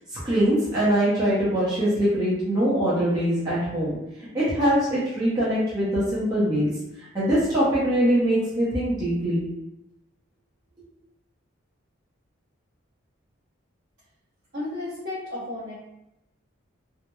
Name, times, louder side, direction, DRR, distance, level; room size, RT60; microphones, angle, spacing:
voice 1, 0.1-4.0 4.3-6.7 7.1-9.5, equal, 20° right, -10 dB, 0.6 m, -23 dB
voice 2, 14.5-15.7, left 2 dB, 55° right, -14 dB, 0.9 m, -33 dB
2.8 x 2.0 x 2.2 m, 0.90 s
head